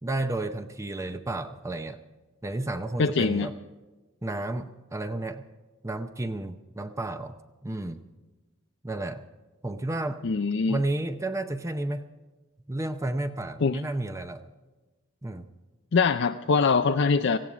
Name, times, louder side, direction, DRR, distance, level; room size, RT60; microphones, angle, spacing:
voice 1, 0.0-2.0 2.4-3.5 4.2-5.5 5.8-7.4 7.6-8.0 8.8-9.2 9.6-10.2 10.7-12.1 12.7-14.4 15.2-15.5, right 2 dB, 15° right, 9 dB, 0.6 m, -32 dB
voice 2, 3.0-3.5 10.2-10.8 13.6-13.8 15.9-17.4, left 4 dB, 60° left, 7 dB, 0.5 m, -23 dB
18.0 x 16.0 x 5.0 m, 1.2 s
head